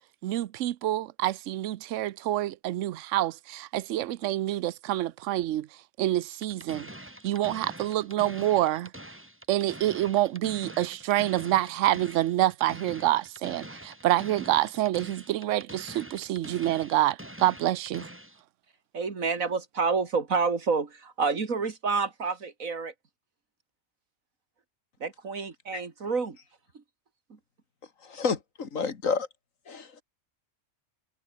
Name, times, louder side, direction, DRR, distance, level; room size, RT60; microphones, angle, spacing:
voice 1, 0.2-5.7 6.0-6.9 7.2-8.9 9.5-18.1, right 14 dB, 70° right, 1.0 m, -27 dB
sound 1, 6.4-18.4, right 1 dB, 10° right, 3.0 m, -45 dB
voice 2, 18.9-22.9 25.0-26.4 27.3-27.4, right 4 dB, 90° right, 2.8 m, -29 dB
voice 3, 28.0-29.3 29.7-30.0, left 5 dB, 75° left, 2.3 m, -30 dB
omnidirectional pair, 1.4 m